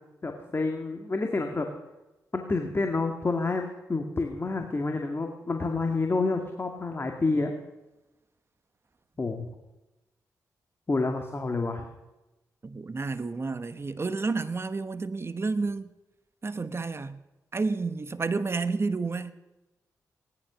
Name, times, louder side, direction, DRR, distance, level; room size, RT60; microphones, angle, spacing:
voice 1, 0.2-1.7 2.3-3.6 3.9-7.5 9.2-9.5 10.9-11.9, left 3 dB, 35° left, 2.1 m, -28 dB
voice 2, 12.6-15.9 16.4-17.2 17.5-19.3, right 4 dB, 40° right, 1.1 m, -30 dB
18.0 x 11.5 x 6.3 m
cardioid pair, 55°, 7 cm